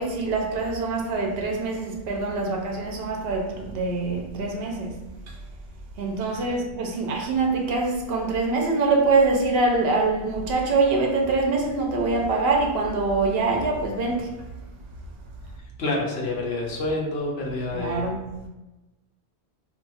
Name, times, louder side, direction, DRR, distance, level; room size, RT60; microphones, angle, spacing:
voice 1, 0.0-5.4 6.0-14.5 17.7-18.3, right 3 dB, 70° right, 0.8 m, -24 dB
voice 2, 15.8-18.1, left 2 dB, 70° left, 0.9 m, -28 dB
2.5 x 2.3 x 4.0 m
omnidirectional pair, 1.1 m